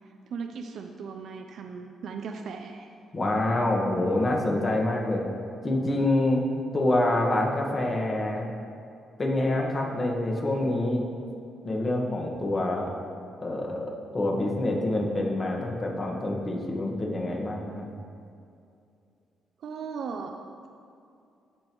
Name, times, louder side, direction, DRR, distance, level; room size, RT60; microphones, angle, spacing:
voice 1, 0.3-2.9 19.6-20.4, right 5 dB, 65° right, 4 dB, 0.5 m, -37 dB
voice 2, 3.1-5.2 5.6-6.4 6.7-8.5 9.2-11.0 11.6-12.9 13.4-17.9, left 1 dB, 30° left, -1 dB, 1.5 m, -26 dB
14.5 x 5.3 x 3.0 m, 2.5 s
cardioid pair, 90°, 0 cm